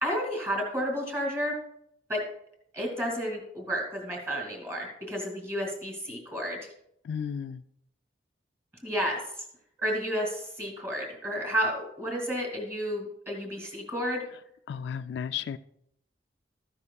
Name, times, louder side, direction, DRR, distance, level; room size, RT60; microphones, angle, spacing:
voice 1, 0.0-1.6 2.1-2.2 2.7-6.7 8.8-9.2 9.8-14.3, equal, 15° right, 2.4 m, -31 dB
voice 2, 7.0-7.6 14.7-15.6, left 7 dB, 70° left, 0.3 m, -33 dB
13.5 x 9.7 x 2.3 m
head